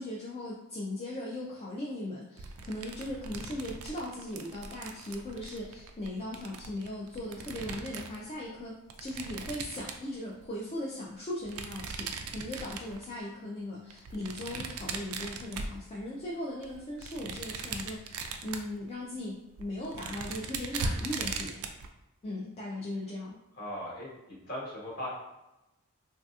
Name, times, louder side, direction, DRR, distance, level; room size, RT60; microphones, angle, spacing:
voice 1, 0.0-21.7 22.2-23.4, left 1 dB, 25° left, -4 dB, 0.3 m, -38 dB
sound 1, 2.4-8.2 8.9-10.4 11.4-13.1 13.9-16.2 16.6-18.8 19.2-19.3 19.6-21.9, right 4 dB, 75° right, 0.3 m, -39 dB
voice 2, 23.5-25.1, equal, 45° left, -6 dB, 1.1 m, -39 dB
3.2 x 2.7 x 2.3 m, 0.95 s
head